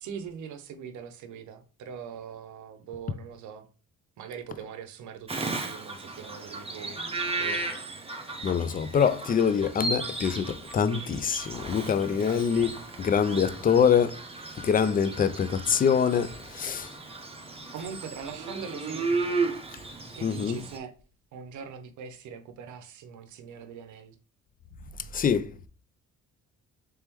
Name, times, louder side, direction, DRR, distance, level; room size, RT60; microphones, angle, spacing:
voice 1, 0.0-3.7 4.2-7.0 7.3-7.6 12.1-12.4 17.7-19.4 20.2-20.9 21.3-24.2, right 7 dB, 75° right, 0.7 m, -42 dB
Bird vocalization bird call bird song, 5.3-20.8, right 3 dB, 20° right, 0.7 m, -35 dB
voice 2, 8.4-14.2 14.6-16.9 20.2-20.6 25.1-25.5, left 7 dB, 30° left, 0.4 m, -25 dB
3.5 x 3.2 x 3.0 m
cardioid pair, 90°, 30 cm